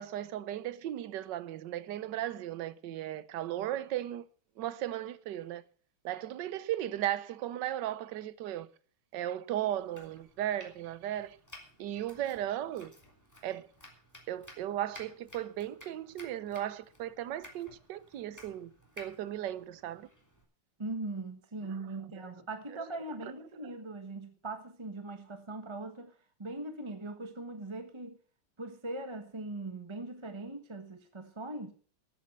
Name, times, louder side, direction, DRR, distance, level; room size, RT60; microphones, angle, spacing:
voice 1, 0.0-4.3 4.6-5.6 6.0-8.7 9.1-11.4 11.8-12.9 13.4-13.7 14.3-20.1 21.7-21.8 22.2-22.3 22.7-22.8, right 12 dB, 65° right, 1.3 m, -36 dB
Domestic sounds home sounds, 9.8-20.4, left 1 dB, 5° left, 3.3 m, -55 dB
voice 2, 20.8-28.2 28.6-31.7, right 2 dB, 20° right, 0.8 m, -40 dB
13.5 x 8.9 x 7.2 m
omnidirectional pair, 2.4 m